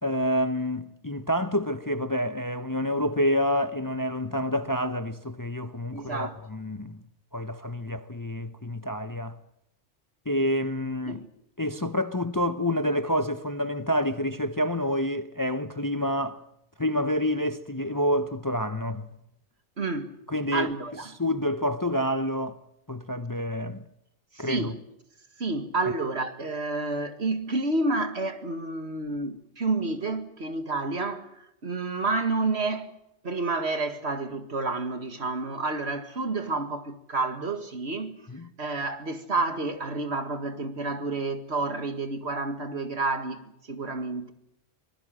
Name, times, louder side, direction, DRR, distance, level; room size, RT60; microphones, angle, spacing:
voice 1, 0.0-7.0 7.3-9.4 10.3-11.2 11.6-16.4 16.8-19.1 20.3-20.7 21.2-22.6 22.9-23.8 24.4-24.7 38.3-38.5, equal, 20° left, 0.8 m, -28 dB
voice 2, 5.9-6.4 11.1-11.3 19.8-20.2 20.5-21.1 24.3-24.8 25.4-31.3 31.6-33.0 33.2-38.2 38.6-43.4 43.7-44.3, right 3 dB, 65° right, 2.3 m, -29 dB
24.0 x 20.5 x 7.7 m
omnidirectional pair, 1.2 m